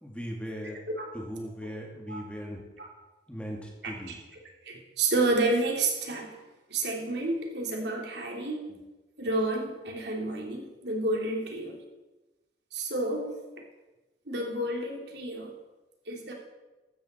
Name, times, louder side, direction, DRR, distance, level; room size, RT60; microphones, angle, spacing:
voice 1, 0.0-0.8 1.1-2.6 3.3-4.2, equal, 5° left, 0 dB, 2.2 m, -38 dB
voice 2, 0.6-1.1 2.1-2.2 2.8-2.9 3.8-4.1 4.6-6.4 6.7-8.7 9.2-11.8 12.7-13.4 14.3-15.5 16.1-16.3, right 2 dB, 75° right, 1 dB, 3.0 m, -30 dB
15.5 x 12.5 x 4.4 m, 1.1 s
head